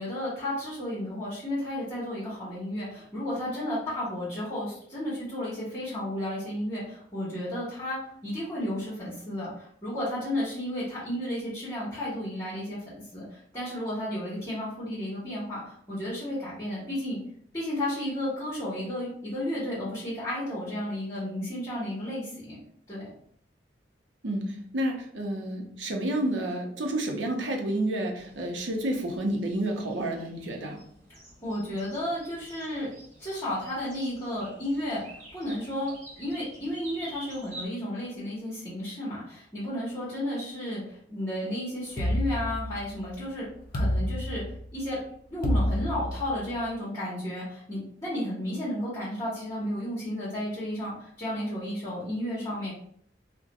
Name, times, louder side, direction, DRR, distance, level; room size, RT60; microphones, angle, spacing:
voice 1, 0.0-17.2 17.5-22.6 22.9-23.1 31.4-32.9 33.2-35.0 35.3-35.9 36.2-43.5 43.7-44.4 44.7-45.0 45.3-52.7, left 1 dB, 20° left, -9 dB, 1.1 m, -33 dB
voice 2, 24.2-30.8, right 1 dB, 85° right, 2 dB, 0.7 m, -30 dB
sound 1, 28.1-37.7, right 1 dB, 45° right, 1.0 m, -49 dB
sound 2, 42.0-43.1 43.7-44.8 45.4-46.5, equal, 55° left, 0.5 m, -28 dB
2.5 x 2.2 x 3.9 m, 0.65 s
head